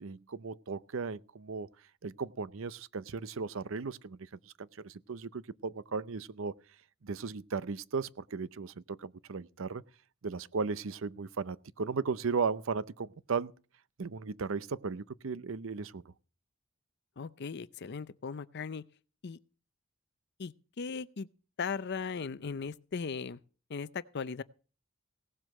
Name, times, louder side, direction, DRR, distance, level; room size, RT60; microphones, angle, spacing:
voice 1, 0.0-1.7 2.0-4.2 4.6-6.5 7.0-9.8 10.2-13.5 14.0-16.0, right 5 dB, 70° right, 0.6 m, -36 dB
voice 2, 17.2-18.8 19.2-19.4 20.4-21.3 21.6-23.4 23.7-24.4, left 5 dB, 55° left, 0.5 m, -38 dB
17.5 x 7.7 x 6.5 m
head